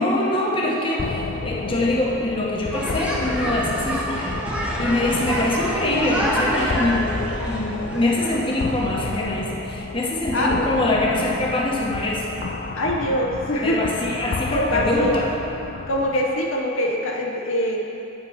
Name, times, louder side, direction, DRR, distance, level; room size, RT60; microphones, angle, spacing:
voice 1, 0.0-12.2 13.6-15.3, left 1 dB, 25° left, -3 dB, 1.0 m, -24 dB
sound 1, 1.0-16.2, left 4 dB, 40° left, 0.3 m, -31 dB
sound 2, 2.7-8.9, equal, 5° right, 0.8 m, -28 dB
voice 2, 10.3-10.7 12.8-13.9 14.5-15.2 15.9-17.8, left 1 dB, 65° left, 0 dB, 0.8 m, -23 dB
8.5 x 5.4 x 5.7 m, 2.8 s
head